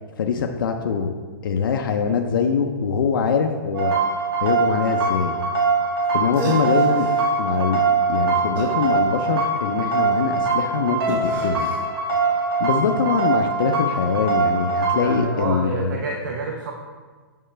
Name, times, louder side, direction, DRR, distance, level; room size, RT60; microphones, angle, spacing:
voice 1, 0.2-1.1 1.4-4.0 4.4-5.3 6.1-7.1 7.4-7.8 8.1-11.7 12.6-16.0, left 6 dB, 65° left, 4 dB, 0.6 m, -23 dB
sound 1, 3.7-15.2, right 4 dB, 75° right, 2.2 m, -22 dB
sound 2, 6.0-6.1 6.3-7.3 8.6-9.6 11.0-11.8, right 2 dB, 15° right, 1.2 m, -32 dB
voice 2, 14.9-16.7, right 3 dB, 55° right, 1 dB, 0.8 m, -27 dB
8.9 x 6.4 x 3.3 m, 1.5 s
hypercardioid pair, 165°, 12 cm